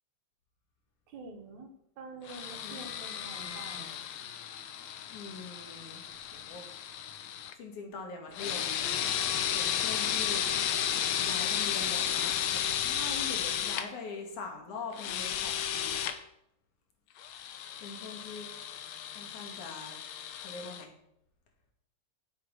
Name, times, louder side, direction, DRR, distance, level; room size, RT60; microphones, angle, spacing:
voice 1, 1.1-3.9, right 3 dB, 75° right, 5 dB, 2.9 m, -47 dB
sound 1, 2.3-7.5 8.3-13.8 14.9-16.1 17.2-20.8, left 9 dB, 70° left, 2.1 m, -33 dB
voice 2, 5.1-6.7 7.0-7.1 7.6-9.1 9.5-10.4 11.2-16.0 17.8-18.5 19.1-20.0 20.3-20.9, left 4 dB, 85° left, 2 dB, 3.8 m, -43 dB
12.5 x 7.9 x 6.4 m, 0.78 s
omnidirectional pair, 3.3 m